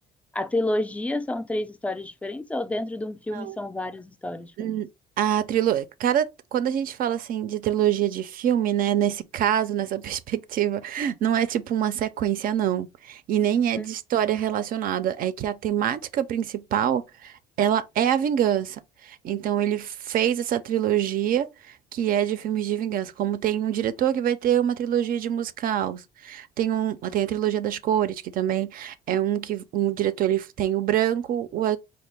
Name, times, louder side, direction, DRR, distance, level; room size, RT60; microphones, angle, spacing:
voice 1, 0.3-4.8 13.7-13.8, left 1 dB, 10° left, 0.3 m, -29 dB
voice 2, 4.6-4.9 5.2-31.8, right 10 dB, 60° right, 0.4 m, -25 dB
4.4 x 2.1 x 3.2 m
cardioid pair, 110°, 17 cm